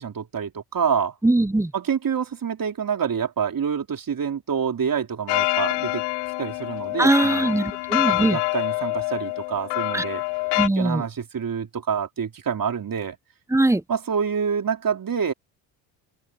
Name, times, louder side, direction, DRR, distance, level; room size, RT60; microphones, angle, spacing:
voice 1, 0.0-1.2 1.7-6.0 6.4-7.6 8.1-10.2 10.8-13.2 13.9-15.3, right 7 dB, 45° right, 4.0 m, -27 dB
voice 2, 1.2-1.7 7.0-8.4 9.9-10.0 10.6-11.0 13.5-13.8, right 2 dB, 5° right, 0.9 m, -21 dB
sound 1, 5.3-10.7, left 24 dB, 85° left, 4.2 m, -26 dB
open air
supercardioid pair, 65°, 48 cm